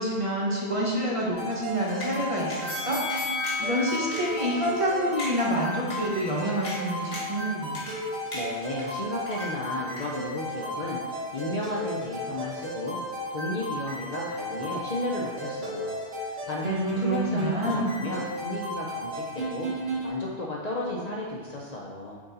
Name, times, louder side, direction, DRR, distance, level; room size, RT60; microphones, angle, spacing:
voice 1, 0.0-3.0 3.3-7.8 16.6-18.0, equal, 30° right, -4 dB, 1.0 m, -28 dB
sound 1, 1.3-20.1, equal, 80° right, 2.0 m, -34 dB
sound 2, 2.0-2.1 2.5-2.6 3.1-3.7 4.1-4.2 4.7-4.8 5.2-5.3 5.9-6.0 6.6-6.8 7.1-7.4 7.7-8.0 8.3-8.9 9.3-9.7 10.0-10.1, left 2 dB, 65° left, 1.6 m, -37 dB
sound 3, 2.7-5.8 6.2-6.3, left 4 dB, ahead, 1.3 m, -34 dB
voice 2, 8.3-19.7 20.0-22.2, left 1 dB, 45° left, -3 dB, 0.6 m, -33 dB
6.1 x 3.9 x 4.0 m, 1.5 s
omnidirectional pair, 1.1 m